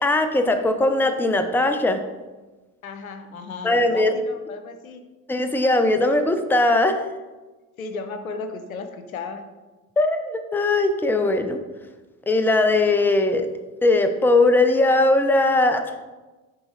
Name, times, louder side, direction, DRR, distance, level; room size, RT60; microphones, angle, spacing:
voice 1, 0.0-2.0 3.6-4.1 5.3-7.0 10.0-11.6 12.3-13.5 13.8-15.8, left 2 dB, 5° left, 8 dB, 0.6 m, -19 dB
voice 2, 2.8-5.0 7.8-9.4, left 4 dB, 85° left, 8 dB, 0.7 m, -35 dB
10.5 x 3.7 x 3.2 m, 1.2 s
figure-of-eight pair, 60°, 41 cm